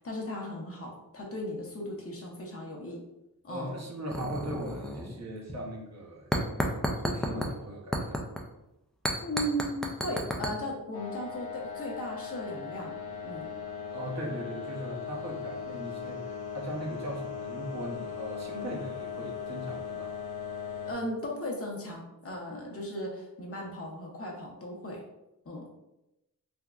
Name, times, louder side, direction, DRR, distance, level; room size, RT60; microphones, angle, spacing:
voice 1, 0.0-3.0 3.4-3.7 9.2-12.9 13.2-13.5 20.9-25.0 25.5-25.7, equal, 40° left, 0 dB, 0.7 m, -36 dB
voice 2, 3.5-8.2 13.9-20.1, right 1 dB, 45° right, -3 dB, 0.8 m, -39 dB
sound 1, 4.1-5.2 5.5-5.7 6.3-7.5 7.9-8.4 9.0-10.5, equal, ahead, 0.3 m, -31 dB
sound 2, 10.9-20.9, left 7 dB, 75° left, 0.6 m, -38 dB
3.4 x 2.8 x 2.3 m, 0.90 s
wide cardioid pair, 95°, 38 cm